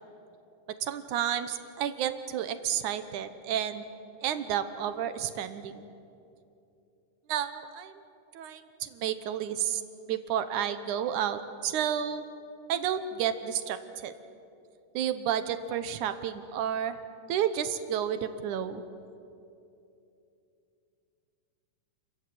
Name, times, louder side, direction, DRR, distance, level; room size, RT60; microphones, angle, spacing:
voice 1, 0.8-3.8 4.2-5.9 7.3-8.0 8.3-9.8 10.1-12.2 12.7-14.1 14.9-17.0 17.3-18.8, right 9 dB, 70° right, 11 dB, 2.3 m, -31 dB
29.5 x 15.0 x 9.4 m, 2.7 s
omnidirectional pair, 3.9 m